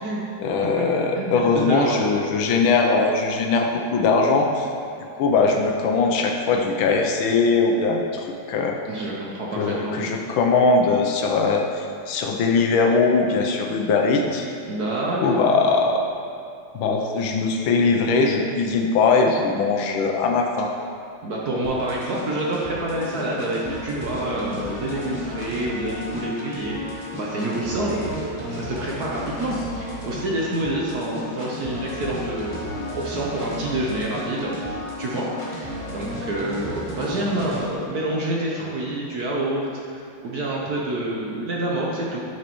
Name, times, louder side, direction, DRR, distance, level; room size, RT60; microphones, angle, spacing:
voice 1, 0.4-4.7 5.2-8.8 9.6-14.5 15.2-16.0 16.7-20.7, left 4 dB, 75° left, 2 dB, 1.4 m, -21 dB
voice 2, 1.2-2.0 8.9-9.9 14.7-15.4 21.2-32.7 32.9-42.2, right 1 dB, 60° right, -3 dB, 1.1 m, -27 dB
sound 1, 21.6-37.6, left 1 dB, 20° left, 1.1 m, -33 dB
10.5 x 6.2 x 3.0 m, 2.6 s
omnidirectional pair, 2.4 m